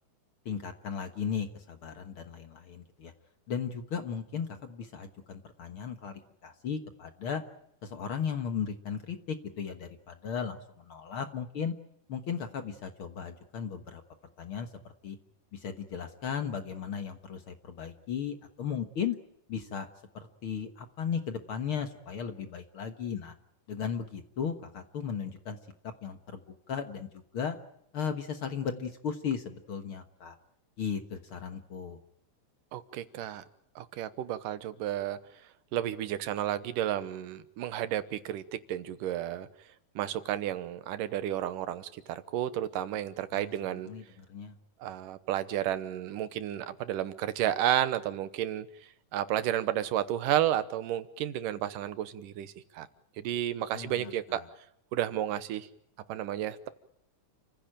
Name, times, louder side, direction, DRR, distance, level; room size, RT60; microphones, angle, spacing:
voice 1, 0.5-3.1 3.5-7.4 7.8-11.7 12.1-14.0 14.4-15.2 15.5-19.2 19.5-19.9 20.1-23.3 23.7-25.6 25.8-27.6 27.9-30.4 30.8-32.0 43.3-44.6 53.7-54.5, left 7 dB, 50° left, 7 dB, 1.8 m, -36 dB
voice 2, 32.7-33.4 33.8-35.2 35.7-39.5 40.0-43.9 44.8-48.7 49.1-52.9 53.2-54.4 54.9-55.7 56.1-56.7, right 12 dB, 90° right, 13 dB, 2.7 m, -32 dB
29.5 x 15.5 x 9.0 m, 0.76 s
omnidirectional pair, 3.7 m